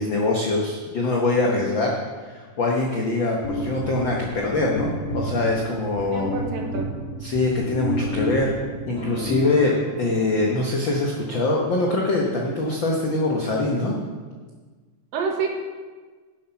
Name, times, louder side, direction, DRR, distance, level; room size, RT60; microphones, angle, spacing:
voice 1, 0.0-6.3 7.2-8.6 8.9-14.0, left 2 dB, 75° left, -1 dB, 1.1 m, -23 dB
sound 1, 3.4-10.0, equal, 20° left, 1.1 m, -31 dB
voice 2, 6.1-6.9 15.1-15.5, right 6 dB, 85° right, 2 dB, 3.0 m, -27 dB
sound 2, 8.9-13.8, right 1 dB, 45° right, 0.4 m, -42 dB
10.0 x 7.7 x 5.8 m, 1.4 s
omnidirectional pair, 3.9 m